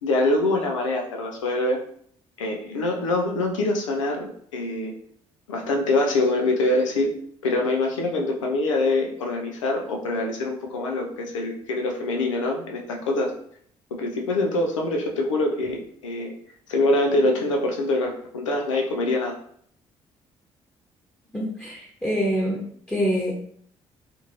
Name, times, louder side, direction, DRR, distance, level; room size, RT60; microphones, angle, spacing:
voice 1, 0.0-1.8 2.4-4.9 5.5-7.1 7.4-13.3 13.9-16.3 16.7-19.3, left 2 dB, 85° left, 1 dB, 0.5 m, -24 dB
voice 2, 21.3-22.6 22.9-23.3, equal, 10° left, -5 dB, 1.0 m, -25 dB
2.6 x 2.5 x 2.9 m, 0.64 s
figure-of-eight pair, 45°, 16 cm